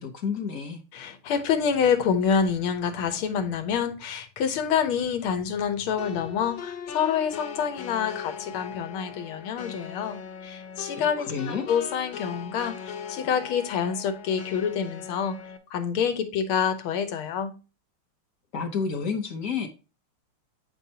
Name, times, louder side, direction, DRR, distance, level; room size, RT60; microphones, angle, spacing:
voice 1, 0.0-0.8 11.2-11.7 18.5-19.7, left 5 dB, 55° left, 1.0 m, -30 dB
voice 2, 0.9-15.4 15.7-17.5, left 7 dB, 90° left, 1.8 m, -27 dB
sound 1, 6.0-15.6, left 7 dB, 75° left, 1.6 m, -39 dB
7.3 x 5.4 x 2.7 m
omnidirectional pair, 2.3 m